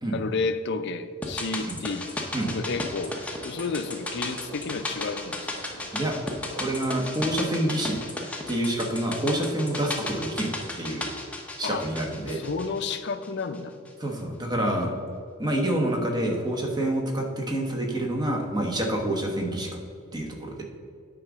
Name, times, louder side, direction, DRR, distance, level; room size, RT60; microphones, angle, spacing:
voice 1, 0.1-2.1 2.5-3.1 3.4-5.5 11.6-11.9 12.3-13.7, left 4 dB, 55° left, 10 dB, 0.5 m, -31 dB
sound 1, 1.2-13.6 13.8-13.9, left 2 dB, 5° left, 0.7 m, -35 dB
sound 2, 2.3-7.5, right 1 dB, 85° right, 1.7 m, -45 dB
voice 2, 6.5-8.0 8.5-11.1 11.6-12.4 14.0-14.9 15.4-19.8 20.1-20.6, right 1 dB, 20° right, 2 dB, 1.0 m, -27 dB
8.7 x 3.7 x 6.0 m, 2.3 s
head